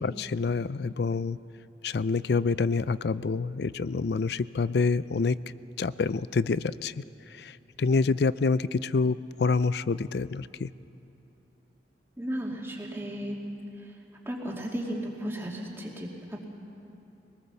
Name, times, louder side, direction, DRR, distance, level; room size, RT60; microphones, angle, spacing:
voice 1, 0.0-1.4 1.8-5.4 5.8-7.0 7.3-10.7, left 4 dB, 65° left, 17 dB, 0.4 m, -27 dB
voice 2, 12.2-13.4 14.3-16.4, equal, 15° right, -2 dB, 2.5 m, -34 dB
24.0 x 19.5 x 7.0 m, 2.8 s
head